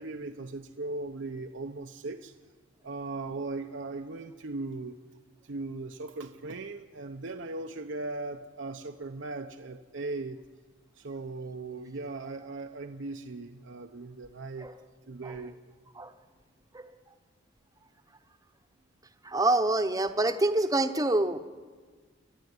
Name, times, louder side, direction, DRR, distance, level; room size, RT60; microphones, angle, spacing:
voice 1, 0.0-2.3 2.8-5.0 5.4-10.4 10.9-14.7 15.1-15.5, right 3 dB, 65° right, 5 dB, 0.8 m, -38 dB
voice 2, 19.2-21.4, right 2 dB, 20° right, 9 dB, 1.0 m, -26 dB
28.5 x 12.0 x 9.5 m, 1.5 s
head